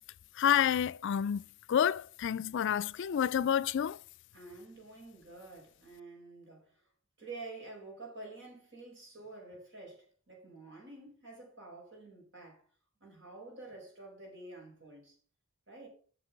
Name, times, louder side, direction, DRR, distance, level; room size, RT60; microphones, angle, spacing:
voice 1, 0.4-1.4 1.7-4.0, left 9 dB, 60° left, 0.3 m, -29 dB
voice 2, 4.3-6.7 7.2-12.6 13.0-15.2 15.7-15.9, right 2 dB, 60° right, 5.2 m, -49 dB
8.2 x 6.7 x 5.8 m
head